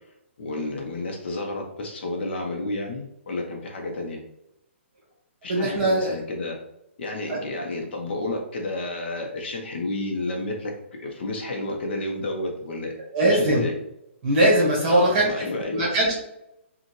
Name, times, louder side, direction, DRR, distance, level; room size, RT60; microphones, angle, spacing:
voice 1, 0.4-4.2 5.4-6.6 7.0-10.7 11.0-12.9 13.2-13.7 14.9-15.9, left 2 dB, 55° left, 1 dB, 0.9 m, -31 dB
voice 2, 5.5-6.1 7.3-7.4 13.1-13.6 14.2-15.3 15.7-16.2, right 1 dB, 35° right, -4 dB, 1.5 m, -20 dB
5.4 x 2.4 x 3.1 m, 0.82 s
hypercardioid pair, 160°, 7 cm